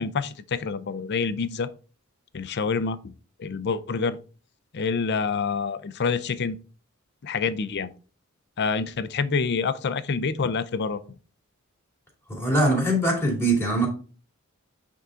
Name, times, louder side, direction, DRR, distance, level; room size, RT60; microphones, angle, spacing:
voice 1, 0.0-1.7 2.3-3.1 3.4-4.2 4.7-6.6 7.2-7.9 8.6-11.0, left 5 dB, 50° left, 0.5 m, -27 dB
voice 2, 12.3-13.9, right 1 dB, 10° left, 2.5 m, -22 dB
8.1 x 3.7 x 3.8 m
head